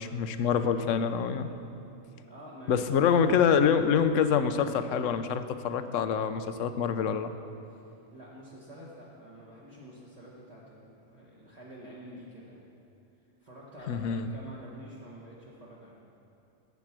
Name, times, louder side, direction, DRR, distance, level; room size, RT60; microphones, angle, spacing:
voice 1, 0.0-1.5 2.7-7.3 13.9-14.3, left 7 dB, 75° left, 10 dB, 1.0 m, -26 dB
voice 2, 2.3-3.0 7.7-12.6 13.4-16.0, equal, 30° right, -8 dB, 1.7 m, -48 dB
13.0 x 8.2 x 6.1 m, 2.8 s
omnidirectional pair, 1.4 m